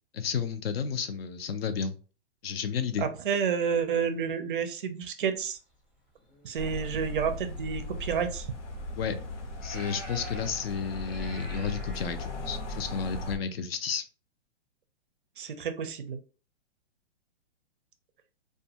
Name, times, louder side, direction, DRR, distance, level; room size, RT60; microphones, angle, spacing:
voice 1, 0.1-2.0 2.4-3.1 8.9-9.2 9.6-14.0, left 6 dB, 60° left, 9 dB, 0.5 m, -32 dB
voice 2, 3.0-5.6 6.4-8.5 15.4-16.2, right 7 dB, 50° right, 9 dB, 0.4 m, -30 dB
sound 1, 6.0-6.6 7.5-7.6 8.1-8.2 8.8-8.9 9.5-12.5, right 1 dB, 10° left, 0.6 m, -46 dB
sound 2, 6.6-13.4, left 1 dB, 80° left, 0.9 m, -37 dB
2.5 x 2.3 x 2.7 m, 0.36 s
hypercardioid pair, 175°, 34 cm